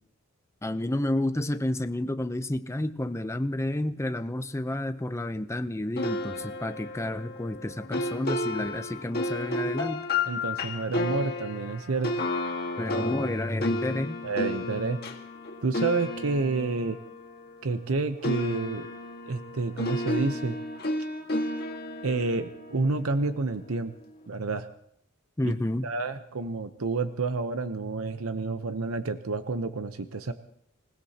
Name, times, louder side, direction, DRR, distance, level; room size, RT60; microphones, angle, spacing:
voice 1, 0.6-10.1 12.8-14.2 25.4-25.9, left 1 dB, 15° left, 9 dB, 0.6 m, -30 dB
sound 1, 6.0-17.9 18.2-23.5, left 2 dB, 50° left, 1.7 m, -32 dB
voice 2, 10.3-12.2 14.2-15.0 15.6-17.0 17.6-18.9 19.3-20.6 22.0-23.9 24.3-24.7 25.4-25.5 25.8-30.3, right 3 dB, 90° right, 9 dB, 0.8 m, -29 dB
27.0 x 17.0 x 2.9 m, 0.72 s
head